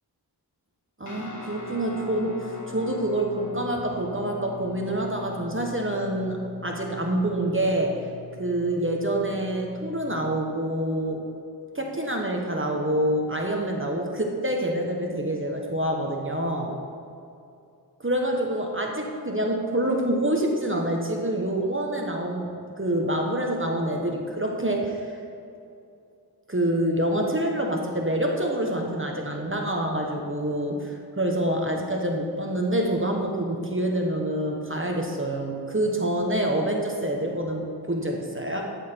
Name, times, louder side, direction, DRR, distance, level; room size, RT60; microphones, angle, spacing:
voice 1, 1.0-8.0 8.4-11.2 11.7-16.7 18.0-25.2 26.5-38.8, right 1 dB, 30° right, 1 dB, 1.2 m, -27 dB
Guitar, 1.1-10.4, left 5 dB, 45° left, 1.3 m, -42 dB
12.5 x 7.4 x 4.5 m, 2.6 s
wide cardioid pair, 50°, 40 cm